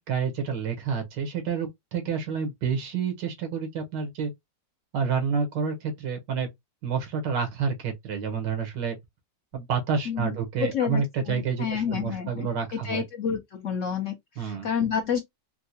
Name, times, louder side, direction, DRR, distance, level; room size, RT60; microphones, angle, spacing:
voice 1, 0.1-4.3 4.9-6.5 6.8-9.0 9.5-13.0 14.4-14.7, right 6 dB, 85° right, 1.7 m, -29 dB
voice 2, 10.1-15.2, left 7 dB, 65° left, 0.7 m, -30 dB
4.5 x 2.1 x 2.6 m
omnidirectional pair, 1.9 m